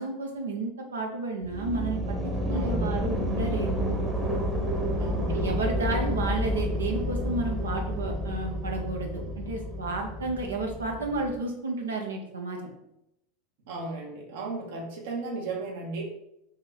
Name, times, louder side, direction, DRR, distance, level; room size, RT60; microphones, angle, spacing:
voice 1, 0.0-2.2 2.5-3.9 5.3-12.6, right 2 dB, 85° right, 2 dB, 0.6 m, -32 dB
sound 1, 1.4-11.4, equal, 20° right, 0.9 m, -30 dB
voice 2, 2.5-2.9 5.0-5.6 13.7-16.0, right 3 dB, 65° right, -1 dB, 1.0 m, -35 dB
3.0 x 2.8 x 3.9 m, 0.82 s
hypercardioid pair, 85°, 0 cm